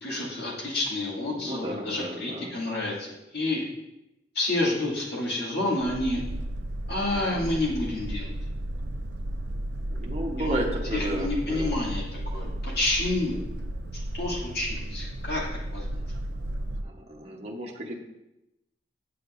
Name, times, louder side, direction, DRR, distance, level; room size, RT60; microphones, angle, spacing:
voice 1, 0.0-3.6 4.3-6.2 6.9-8.3 10.4-10.6 10.9-13.4 14.1-15.5 15.7-15.9, left 2 dB, 60° left, -5 dB, 2.2 m, -29 dB
voice 2, 1.3-2.5 9.9-11.8 15.9-16.0 16.8-17.9, right 1 dB, 35° right, -1 dB, 0.8 m, -33 dB
Boat Water vehicle, 5.8-16.8, right 1 dB, 65° right, 0.4 m, -33 dB
8.5 x 6.5 x 2.5 m, 0.91 s
head